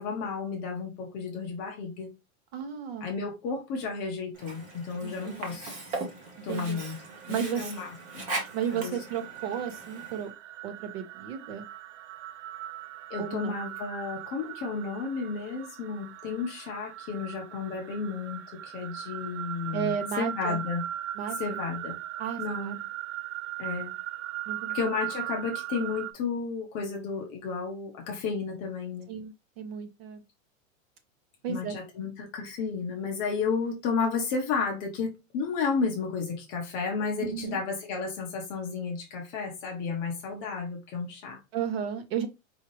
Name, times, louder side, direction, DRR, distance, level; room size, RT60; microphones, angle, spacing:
voice 1, 0.0-2.1 3.0-5.7 6.4-7.0 7.3-8.2 8.7-9.0 13.1-20.8 21.4-22.0 22.4-22.8 23.6-23.9 24.7-29.1 31.5-41.4, left 5 dB, 20° left, 0.6 m, -32 dB
voice 2, 2.5-3.1 5.0-5.6 6.5-6.8 7.3-7.7 8.5-10.3 10.6-11.7 13.1-13.6 19.7-20.6 21.1-21.4 22.2-22.8 24.5-24.8 29.1-30.2 31.4-31.7 37.2-37.6 41.5-42.3, right 8 dB, 50° right, 0.9 m, -33 dB
Sink (filling or washing), 4.3-10.3, right 2 dB, 20° right, 0.7 m, -39 dB
sound 1, 6.5-26.1, right 13 dB, 65° right, 0.6 m, -40 dB
4.8 x 2.7 x 3.0 m
supercardioid pair, 170°, 41 cm